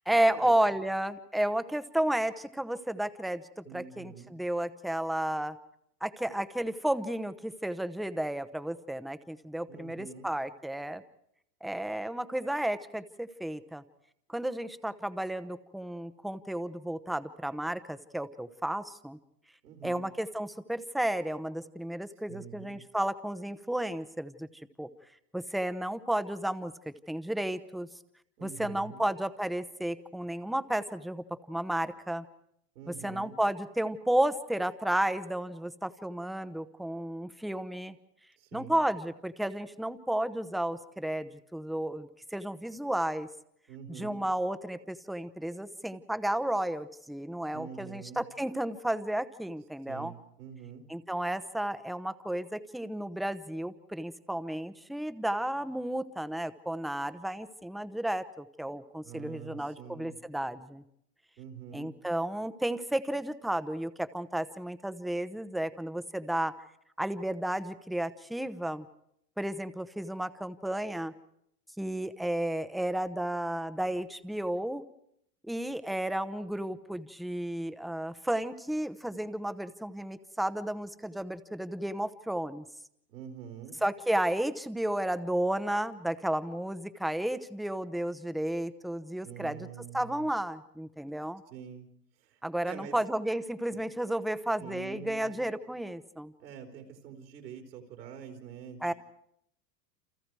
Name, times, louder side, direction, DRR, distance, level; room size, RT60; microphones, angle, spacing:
voice 1, 0.1-5.6 6.0-11.0 11.6-13.8 14.3-19.2 19.8-24.5 24.8-24.9 25.3-27.9 28.4-32.2 32.9-38.0 38.5-43.3 43.9-50.1 50.9-60.8 61.7-66.5 67.0-68.9 69.4-71.1 71.8-74.8 75.4-82.6 83.8-89.7 89.9-91.4 92.4-96.3 98.8-98.9, right 1 dB, ahead, 12 dB, 0.9 m, -32 dB
voice 2, 3.6-4.3 9.7-10.3 19.6-20.1 22.3-22.8 28.4-29.0 32.7-33.4 38.4-38.8 43.7-44.2 47.5-48.2 49.9-50.9 59.0-60.2 61.4-62.0 83.1-83.8 89.2-90.2 91.5-91.9 92.2-93.0 93.7-93.8 94.6-95.3 96.4-98.9, right 8 dB, 80° right, 4 dB, 4.5 m, -46 dB
29.0 x 28.0 x 4.8 m, 0.74 s
hypercardioid pair, 105°, 50 cm